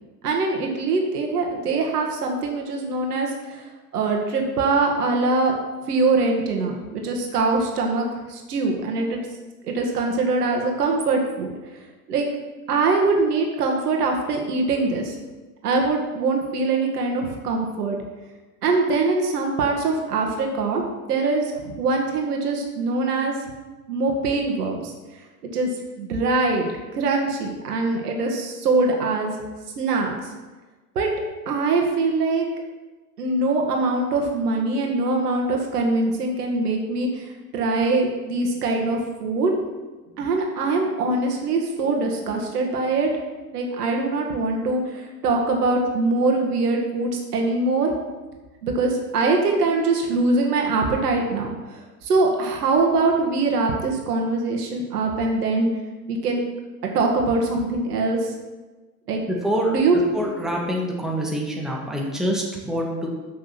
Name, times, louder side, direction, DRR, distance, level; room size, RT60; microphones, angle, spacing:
voice 1, 0.2-3.6 3.9-5.5 5.9-9.2 9.6-11.5 12.1-12.3 12.7-15.1 15.6-18.0 18.6-23.3 23.9-24.9 25.5-25.7 26.0-29.3 29.8-30.3 31.0-31.1 31.5-32.5 33.2-39.5 40.2-43.1 43.5-47.9 48.6-51.8 52.0-55.7 56.1-56.4 56.9-58.3 59.1-59.2 59.7-60.0, right 3 dB, 75° right, 1 dB, 1.8 m, -23 dB
voice 2, 59.3-59.7 60.1-63.1, equal, ahead, -2 dB, 2.0 m, -26 dB
7.3 x 6.3 x 5.9 m, 1.2 s
hypercardioid pair, 90°, 47 cm